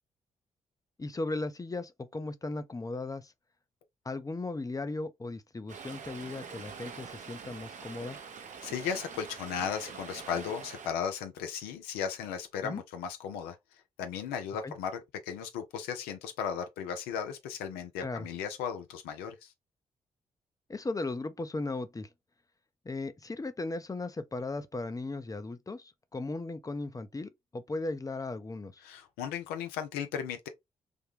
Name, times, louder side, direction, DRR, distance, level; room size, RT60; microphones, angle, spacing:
voice 1, 1.0-3.3 4.0-8.2 12.6-12.8 14.6-14.7 18.0-18.3 20.7-22.1 22.8-28.8, left 2 dB, 20° left, 0.6 m, -37 dB
Stream, 5.7-10.9, right 6 dB, 50° right, 0.7 m, -45 dB
voice 2, 8.6-13.6 14.0-19.5 28.8-30.5, left 7 dB, 80° left, 0.5 m, -36 dB
3.4 x 2.2 x 3.2 m
hypercardioid pair, 40°, 16 cm